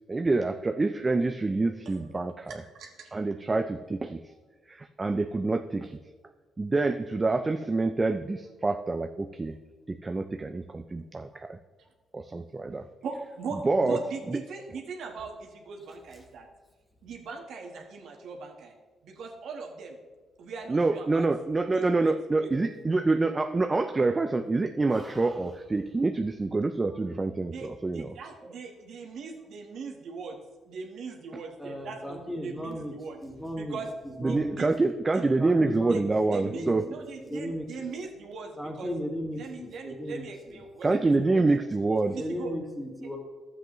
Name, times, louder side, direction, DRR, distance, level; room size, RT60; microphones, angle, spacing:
voice 1, 0.1-2.6 3.1-4.2 4.7-6.0 6.6-9.5 9.9-11.6 12.1-12.9 13.6-14.0 20.7-28.1 28.4-28.5 34.2-36.9 40.8-42.2, right 3 dB, 25° right, 7 dB, 0.4 m, -26 dB
voice 2, 1.8-2.2 2.5-3.1 13.0-16.5 17.0-18.7 19.0-20.0 20.4-21.3 21.7-22.5 27.5-30.4 30.7-33.2 33.5-33.9 34.2-34.7 35.1-35.2 35.9-36.0 36.3-38.9 39.3-41.6 42.1-42.5 43.0-43.2, right 4 dB, 70° right, 2 dB, 1.3 m, -40 dB
voice 3, 24.9-25.4 31.6-32.9 33.2-33.8 34.2-34.6 35.4-36.1 36.4-37.7 38.6-40.6 42.2-43.2, equal, 5° left, 1 dB, 1.9 m, -36 dB
12.0 x 7.8 x 3.1 m, 1.3 s
cardioid pair, 90°, 0 cm